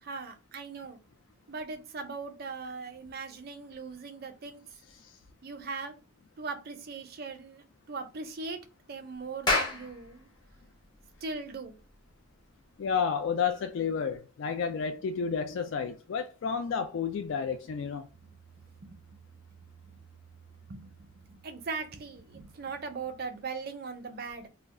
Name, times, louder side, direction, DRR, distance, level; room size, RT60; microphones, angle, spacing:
voice 1, 0.0-1.0 1.5-4.6 5.4-5.9 6.4-8.6 8.9-10.3 11.2-11.8 18.8-18.9 19.8-20.0 20.7-24.5, right 4 dB, 50° right, 0.5 m, -39 dB
Clapping, 9.3-14.1, left 2 dB, 20° left, 0.6 m, -34 dB
voice 2, 12.8-18.1, left 6 dB, 65° left, 0.3 m, -31 dB
2.3 x 2.1 x 3.6 m
head